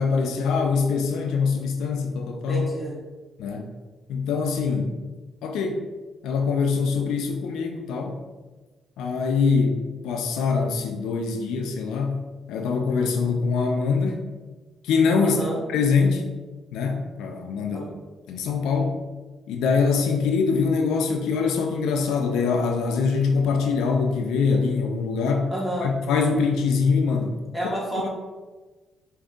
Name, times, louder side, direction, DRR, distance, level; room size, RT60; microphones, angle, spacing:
voice 1, 0.0-2.6 3.4-3.7 4.1-4.9 5.4-5.8 6.2-8.2 9.0-12.2 12.5-14.2 14.8-15.4 15.7-16.3 16.7-17.9 18.3-19.0 19.5-25.5 25.8-27.4 27.9-28.1, left 5 dB, 90° left, 3 dB, 0.4 m, -23 dB
voice 2, 2.5-3.0 15.2-15.6 17.7-17.9 25.5-25.9 27.5-28.1, right 1 dB, 5° right, -4 dB, 1.2 m, -29 dB
4.9 x 2.6 x 2.4 m, 1.2 s
cardioid pair, 90°, 0 cm